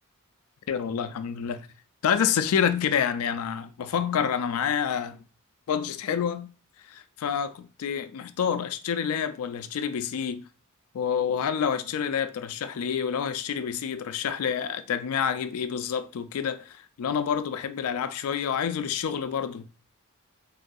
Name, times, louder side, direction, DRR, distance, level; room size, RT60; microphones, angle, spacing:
voice 1, 0.7-1.7 2.0-5.2 5.7-6.5 6.9-10.5 10.9-19.7, left 7 dB, 75° left, 0.3 m, -28 dB
3.7 x 2.6 x 2.3 m
head